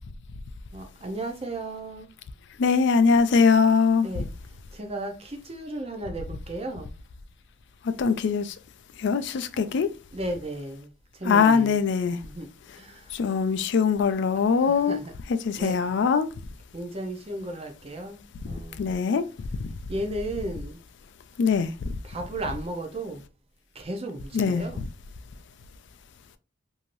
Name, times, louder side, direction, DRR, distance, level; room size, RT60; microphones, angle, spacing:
voice 1, 0.7-2.1 4.0-4.3 4.7-6.9 9.5-9.7 10.1-11.8 12.2-12.5 12.7-13.3 14.6-15.1 15.5-16.0 16.7-19.0 19.9-20.8 22.0-23.2 23.7-24.8, right 1 dB, 30° right, 0.6 m, -35 dB
voice 2, 2.6-4.2 8.0-8.5 9.0-9.9 11.3-12.2 13.1-15.0 15.4-16.3 18.8-19.2 21.4-21.7 24.3-24.6, left 5 dB, 60° left, 0.3 m, -22 dB
3.1 x 2.7 x 2.5 m
head